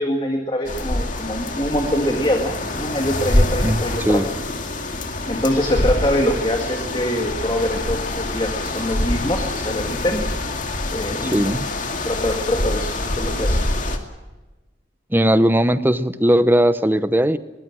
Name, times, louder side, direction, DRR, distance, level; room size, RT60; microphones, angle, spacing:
voice 1, 0.0-4.2 5.3-10.2 10.9-11.5 12.0-13.6, left 1 dB, 25° left, 3 dB, 2.1 m, -24 dB
sound 1, 0.6-14.0, left 1 dB, 45° left, 2.3 m, -25 dB
voice 2, 3.6-4.3 11.3-11.7 15.1-17.4, equal, 10° right, 12 dB, 0.9 m, -18 dB
22.0 x 19.0 x 7.6 m, 1.1 s
head